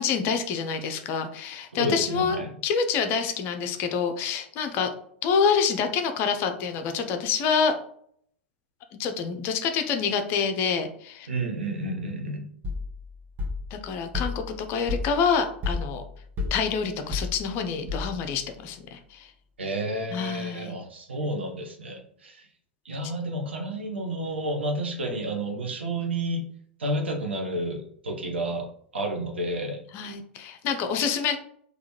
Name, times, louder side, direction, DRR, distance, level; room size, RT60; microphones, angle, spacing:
voice 1, 0.0-4.9 5.2-7.7 9.0-11.3 13.7-16.0 16.5-19.3 20.1-20.7 29.9-31.4, left 6 dB, 40° left, 7 dB, 0.5 m, -27 dB
voice 2, 1.8-2.5 11.3-12.5 19.6-22.4 22.8-26.4 26.8-27.8 28.0-28.6 28.9-29.8, right 1 dB, 75° right, 2 dB, 0.9 m, -30 dB
sound 1, 12.6-18.4, left 4 dB, 30° right, 0.9 m, -33 dB
3.5 x 2.4 x 3.1 m, 0.63 s
figure-of-eight pair, 90°, 6 cm